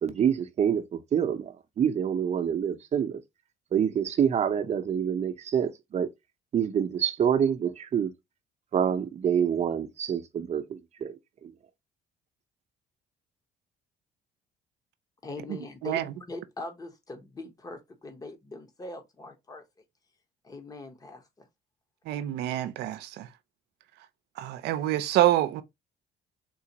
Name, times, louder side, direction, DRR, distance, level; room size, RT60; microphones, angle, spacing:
voice 1, 0.0-3.2 3.7-6.1 6.5-8.1 8.7-11.1 11.4-11.5, right 8 dB, 40° right, 0.7 m, -27 dB
voice 2, 15.2-19.6 20.4-21.5, left 2 dB, 20° left, 0.9 m, -42 dB
voice 3, 22.1-23.3 24.4-25.6, right 13 dB, 80° right, 0.6 m, -26 dB
3.9 x 2.5 x 2.8 m
cardioid pair, 110°, 17 cm